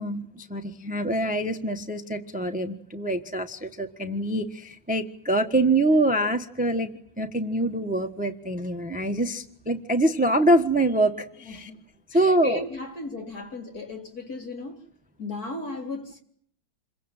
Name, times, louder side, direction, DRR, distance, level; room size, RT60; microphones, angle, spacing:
voice 1, 0.0-11.7 12.1-12.6, right 1 dB, 5° right, 1.1 m, -25 dB
voice 2, 11.4-11.8 12.1-14.8 15.2-16.2, left 3 dB, 50° left, 4.2 m, -36 dB
28.0 x 23.0 x 9.1 m
omnidirectional pair, 2.1 m